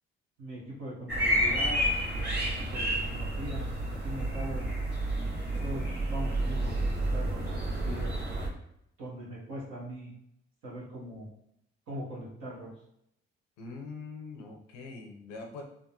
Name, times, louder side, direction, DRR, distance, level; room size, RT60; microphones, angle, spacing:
voice 1, 0.4-1.9 2.1-4.7 5.6-8.1 9.0-10.1 10.6-11.3 11.9-12.7, equal, 85° right, -5 dB, 1.1 m, -41 dB
sound 1, 1.1-8.5, right 1 dB, 35° right, 1.3 m, -30 dB
voice 2, 13.6-15.6, left 4 dB, 85° left, 2 dB, 0.6 m, -43 dB
3.5 x 2.1 x 2.8 m, 0.78 s
hypercardioid pair, 45°, 29 cm